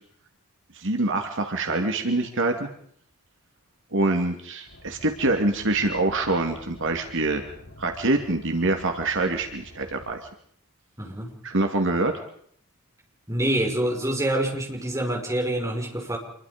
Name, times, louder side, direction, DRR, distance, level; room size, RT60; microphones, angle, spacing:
voice 1, 0.7-2.7 3.9-7.4 7.8-10.2 11.4-12.1, right 2 dB, 60° right, 5 dB, 2.6 m, -25 dB
Car, 4.7-10.1, left 1 dB, 80° left, 7.6 m, -47 dB
voice 2, 11.0-11.4 13.3-16.2, right 1 dB, 15° right, 1 dB, 5.5 m, -26 dB
27.5 x 22.5 x 5.2 m, 0.63 s
head